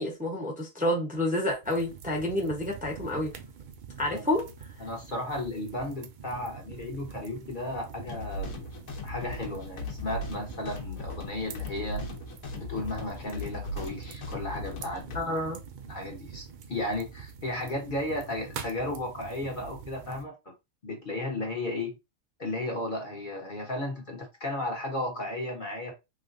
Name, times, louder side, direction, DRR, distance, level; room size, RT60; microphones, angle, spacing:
voice 1, 0.0-3.3 4.0-4.5 15.1-15.6, left 1 dB, 5° right, 0.8 m, -29 dB
sound 1, 1.6-20.2, right 7 dB, 80° right, 0.4 m, -45 dB
voice 2, 4.8-8.7 9.0-12.0 12.6-15.4 15.9-20.5 20.8-22.0 22.4-25.9, left 1 dB, 40° left, 1.0 m, -34 dB
sound 2, 8.1-15.2, left 2 dB, 85° left, 1.3 m, -38 dB
3.4 x 3.2 x 2.5 m
omnidirectional pair, 1.4 m